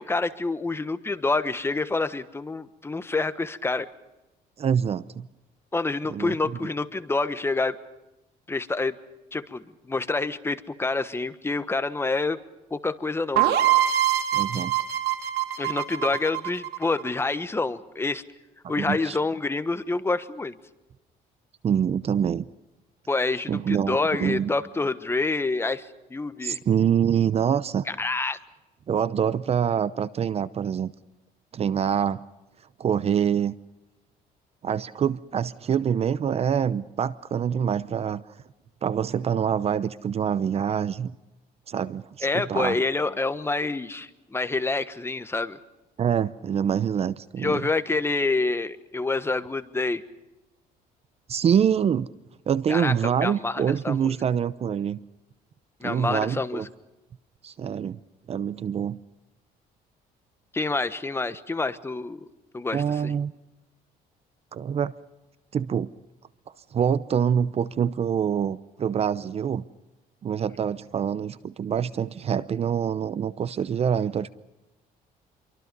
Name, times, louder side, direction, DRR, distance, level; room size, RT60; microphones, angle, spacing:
voice 1, 0.0-3.9 5.7-7.8 8.5-8.9 9.3-12.4 12.7-13.6 15.6-18.2 18.7-20.5 23.1-26.6 27.9-28.4 42.2-45.6 47.4-50.0 52.7-54.2 55.8-56.7 60.5-62.3 62.5-63.1, left 3 dB, 15° left, 12 dB, 1.3 m, -27 dB
voice 2, 4.6-5.3 6.1-6.4 14.3-14.7 18.8-19.2 21.6-22.5 23.5-24.5 26.4-27.8 28.9-30.9 31.5-32.2 32.8-33.5 34.6-38.2 38.8-41.1 41.7-42.8 46.0-47.6 51.3-52.1 52.5-55.0 55.8-56.7 57.4-58.0 58.3-59.0 62.7-63.3 64.5-64.9 65.5-65.9 66.7-69.6 70.2-74.3, right 8 dB, 40° right, 17 dB, 0.7 m, -25 dB
sound 1, 13.4-17.1, right 12 dB, 80° right, 2.1 m, -24 dB
27.5 x 24.0 x 5.4 m, 0.99 s
cardioid pair, 125°, 16 cm